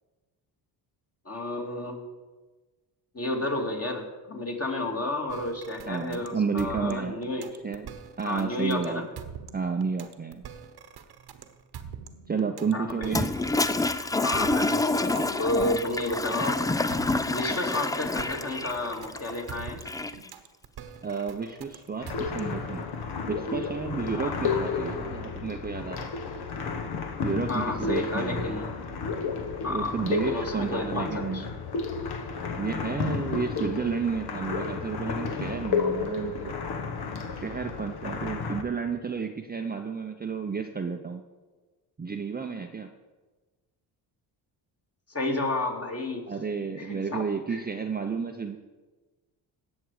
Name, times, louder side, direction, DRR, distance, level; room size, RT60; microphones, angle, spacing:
voice 1, 1.3-2.0 3.1-7.5 8.2-9.1 12.7-13.1 14.2-16.6 17.3-19.8 24.2-24.4 27.5-28.8 29.6-31.5 45.1-46.2 46.8-47.6, left 2 dB, 30° left, 1 dB, 2.5 m, -31 dB
sound 1, 5.3-22.7, right 7 dB, 55° right, 1.2 m, -44 dB
voice 2, 5.9-7.2 7.6-7.9 8.2-9.1 9.5-10.5 12.3-13.3 21.0-22.9 23.3-26.1 27.2-28.6 29.7-31.5 32.6-36.6 37.3-41.2 42.0-42.9 46.3-48.6, right 5 dB, 20° right, 4 dB, 0.7 m, -31 dB
Toilet flush, 13.0-20.3, left 2 dB, 10° left, 0.3 m, -28 dB
sound 2, 22.0-38.6, left 5 dB, 55° left, 1.3 m, -32 dB
17.0 x 6.4 x 4.9 m, 1.3 s
supercardioid pair, 70°, 47 cm